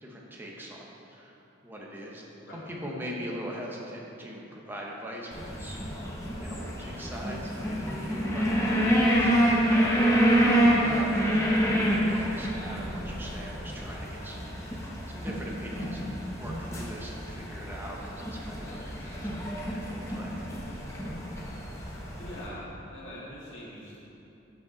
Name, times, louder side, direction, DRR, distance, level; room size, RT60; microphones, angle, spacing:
voice 1, 0.0-2.2 2.5-5.8 6.4-14.5 14.8-20.5, equal, 10° right, -3 dB, 1.1 m, -41 dB
sound 1, 5.3-22.5, equal, 15° left, 1.1 m, -27 dB
voice 2, 22.2-24.0, equal, 75° left, -6 dB, 2.0 m, -43 dB
13.0 x 5.4 x 4.0 m, 2.9 s
head